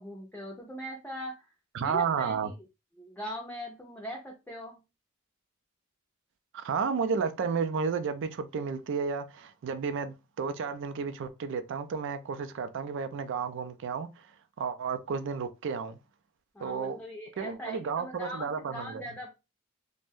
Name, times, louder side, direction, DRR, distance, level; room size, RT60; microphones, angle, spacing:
voice 1, 0.0-1.5 1.8-2.5 3.0-4.8 16.5-19.3, equal, 10° left, 0.5 m, -41 dB
voice 2, 1.7-2.5 6.5-14.3 14.6-16.0 16.6-17.0 17.4-19.0, right 5 dB, 60° right, 0.4 m, -32 dB
2.5 x 2.1 x 3.4 m
head